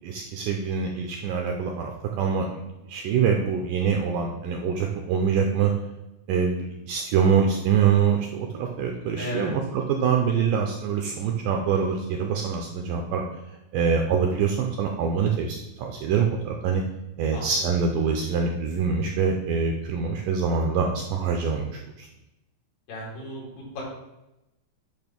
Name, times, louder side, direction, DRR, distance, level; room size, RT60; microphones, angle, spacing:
voice 1, 0.0-5.7 6.3-13.2 13.7-16.8 17.2-21.7 22.0-22.1, right 6 dB, 80° right, 2 dB, 1.9 m, -25 dB
voice 2, 9.2-9.5 17.3-17.5 22.9-23.8, left 1 dB, 65° left, -4 dB, 3.8 m, -34 dB
8.9 x 3.0 x 5.9 m, 0.95 s
omnidirectional pair, 4.4 m